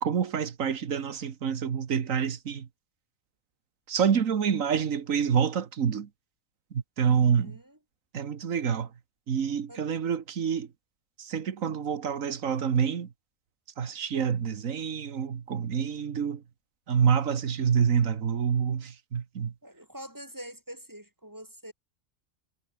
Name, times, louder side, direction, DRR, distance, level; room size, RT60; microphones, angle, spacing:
voice 1, 0.0-2.7 3.9-6.1 6.7-7.6 8.1-8.9 9.3-10.7 11.2-13.1 13.8-16.4 16.9-19.5, right 7 dB, 80° right, 1.7 m, -27 dB
voice 2, 7.0-7.8 9.7-9.9 19.6-21.7, right 1 dB, 15° right, 2.8 m, -45 dB
omnidirectional pair, 1.4 m